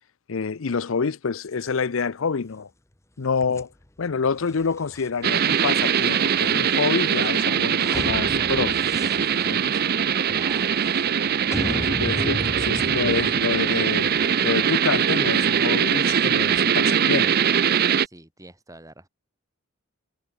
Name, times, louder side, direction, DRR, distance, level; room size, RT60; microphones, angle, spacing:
voice 1, 0.3-2.7 3.2-3.7 4.0-8.8 9.2-9.7 11.7-17.3, left 5 dB, 65° left, 0.6 m, -27 dB
sound 1, 3.4-16.6, left 1 dB, 15° left, 1.1 m, -37 dB
sound 2, 5.2-18.1, right 8 dB, 45° right, 0.5 m, -22 dB
voice 2, 10.3-10.9 18.0-19.1, right 1 dB, 15° right, 5.1 m, -45 dB
head